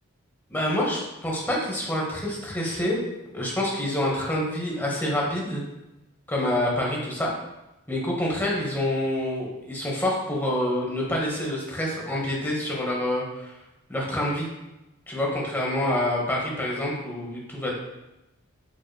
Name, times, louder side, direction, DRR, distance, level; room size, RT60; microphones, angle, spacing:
voice 1, 0.5-3.0 3.3-5.6 6.3-7.3 7.9-13.5 13.9-14.5 15.1-17.7, left 1 dB, 10° left, -3 dB, 0.7 m, -27 dB
5.0 x 2.8 x 2.2 m, 0.96 s
head